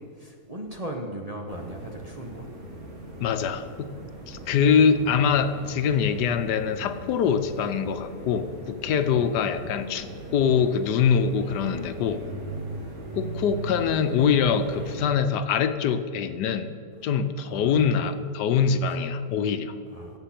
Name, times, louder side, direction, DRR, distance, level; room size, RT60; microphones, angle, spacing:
voice 1, 0.0-2.5 4.3-4.6 9.1-9.3 13.1-13.2 17.0-17.1 17.5-18.1 19.9-20.2, right 1 dB, 30° right, 1 dB, 0.9 m, -38 dB
sound 1, 1.5-15.0, right 2 dB, 60° right, 2.6 m, -39 dB
voice 2, 3.2-3.9 4.3-12.2 13.1-16.7 17.0-19.7, left 7 dB, 80° left, 10 dB, 1.3 m, -24 dB
16.5 x 6.6 x 5.8 m, 2.5 s
omnidirectional pair, 1.8 m